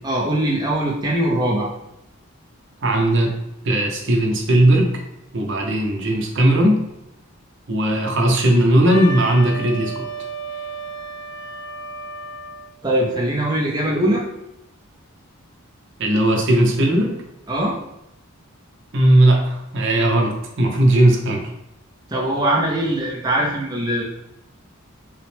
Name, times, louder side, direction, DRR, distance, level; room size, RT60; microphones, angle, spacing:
voice 1, 0.0-1.7 12.8-14.2 17.5-17.8 22.1-24.0, right 1 dB, 20° right, -2 dB, 0.5 m, -21 dB
voice 2, 2.8-3.3 3.6-5.0 5.3-6.8 7.7-10.1 16.0-17.2 18.9-21.5, right 1 dB, 60° right, 1 dB, 0.8 m, -17 dB
Wind instrument woodwind instrument, 8.9-12.7, right 2 dB, 75° left, 1.0 m, -33 dB
5.6 x 2.1 x 3.3 m, 0.84 s
head